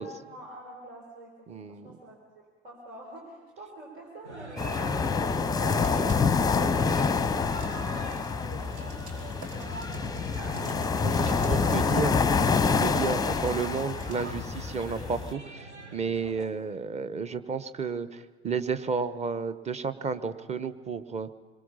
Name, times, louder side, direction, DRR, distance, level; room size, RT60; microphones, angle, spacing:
voice 1, 0.0-1.3 1.6-6.1 6.4-7.5 8.0-9.1 9.4-10.6 11.8-11.9 16.2-16.7 17.3-17.5, right 1 dB, 70° right, -2 dB, 4.5 m, -48 dB
voice 2, 1.5-1.9 6.6-6.8 11.0-21.3, right 5 dB, 20° right, 12 dB, 1.1 m, -32 dB
sound 1, 4.2-16.5, right 2 dB, 85° right, 1.3 m, -43 dB
sound 2, 4.6-15.3, left 5 dB, 10° left, 0.8 m, -27 dB
sound 3, 5.7-14.3, right 2 dB, 55° right, 4.5 m, -49 dB
27.0 x 22.0 x 5.6 m, 1.4 s
figure-of-eight pair, 70°, 33 cm